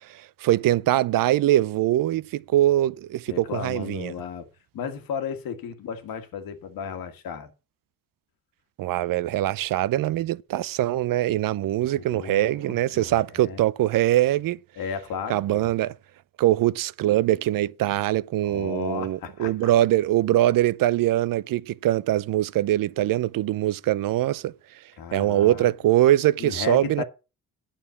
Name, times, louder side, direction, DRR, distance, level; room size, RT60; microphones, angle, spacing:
voice 1, 0.1-4.1 8.8-14.6 15.3-15.9 16.4-24.5 25.1-27.0, right 14 dB, 70° right, 0.6 m, -23 dB
voice 2, 3.3-4.5 4.7-7.5 12.0-13.6 14.7-15.7 18.4-19.7 25.0-25.7 26.4-27.0, left 7 dB, 80° left, 1.7 m, -34 dB
9.0 x 6.5 x 6.9 m
cardioid pair, 85°, 35 cm